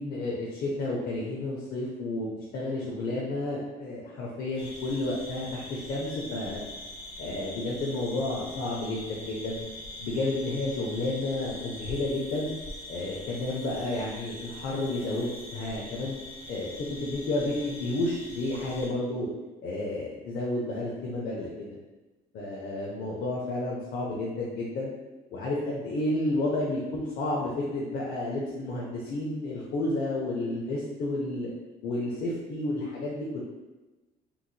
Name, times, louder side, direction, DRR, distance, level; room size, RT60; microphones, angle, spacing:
voice 1, 0.0-2.3 2.5-6.6 7.2-9.6 10.0-12.5 12.9-16.2 16.5-19.3 19.6-21.8 22.3-24.9 25.3-31.5 31.8-33.4, left 2 dB, 65° left, -4 dB, 0.6 m, -31 dB
sound 1, 4.6-18.9, left 1 dB, 30° left, 1.4 m, -43 dB
3.8 x 2.9 x 2.2 m, 1.1 s
cardioid pair, 110°, 17 cm